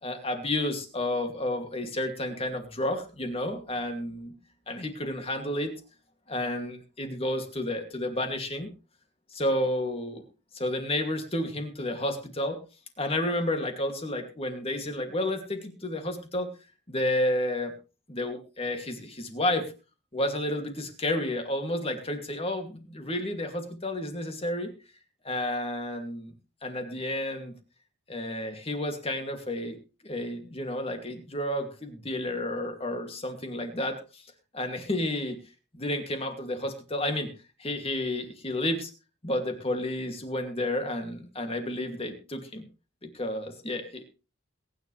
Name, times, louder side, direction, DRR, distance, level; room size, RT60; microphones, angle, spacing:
voice 1, 0.0-4.4 4.7-5.7 6.3-8.7 9.3-10.2 10.5-12.6 13.0-16.5 16.9-17.7 18.1-19.7 20.1-24.7 25.2-26.3 26.6-27.6 28.1-29.8 30.0-34.2 34.5-35.4 35.7-37.3 37.6-38.9 39.2-42.6 43.0-44.0, left 1 dB, 30° left, 5 dB, 2.5 m, -31 dB
22.0 x 10.0 x 3.3 m, 0.32 s
head